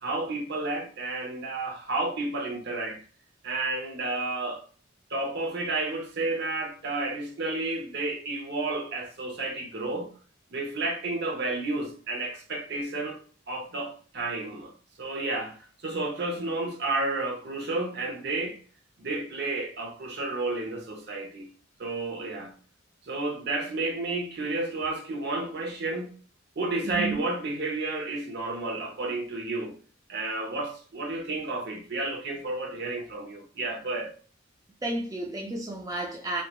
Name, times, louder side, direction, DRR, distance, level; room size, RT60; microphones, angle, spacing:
voice 1, 0.0-3.0 3.4-4.6 5.1-10.1 10.5-13.2 13.5-14.7 15.0-18.6 19.0-21.5 21.8-22.5 23.0-26.1 26.6-29.7 30.1-34.1, right 2 dB, 55° right, 0.6 m, -31 dB
voice 2, 26.8-27.2 34.8-36.4, right 2 dB, 20° right, 0.4 m, -32 dB
2.2 x 2.2 x 2.8 m
head